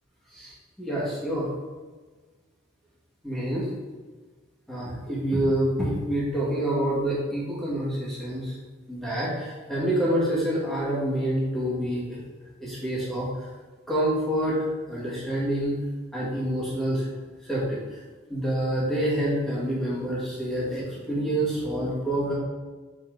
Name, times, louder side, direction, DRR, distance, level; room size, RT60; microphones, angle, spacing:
voice 1, 0.3-1.5 3.2-3.7 4.7-8.5 8.9-12.2 12.6-13.5 13.9-14.6 14.9-15.8 16.1-17.1 17.4-18.0 18.3-22.3, right 1 dB, ahead, -8 dB, 2.0 m, -27 dB
7.3 x 4.4 x 3.8 m, 1.4 s
head